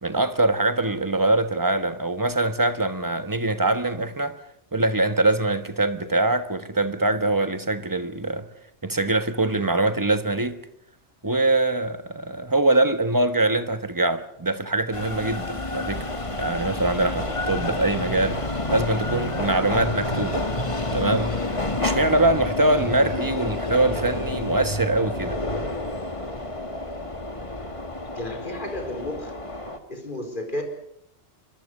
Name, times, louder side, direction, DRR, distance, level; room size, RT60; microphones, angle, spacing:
voice 1, 0.0-4.3 4.7-8.5 8.8-10.6 11.2-16.1 16.4-18.4 18.7-20.4 20.9-21.4 21.7-25.4, right 2 dB, 20° right, 1.3 m, -23 dB
sound 1, 14.9-29.8, left 2 dB, 30° left, 2.0 m, -29 dB
voice 2, 28.1-29.4 29.9-30.6, left 1 dB, 45° left, 4.6 m, -32 dB
25.0 x 22.0 x 6.6 m
omnidirectional pair, 1.2 m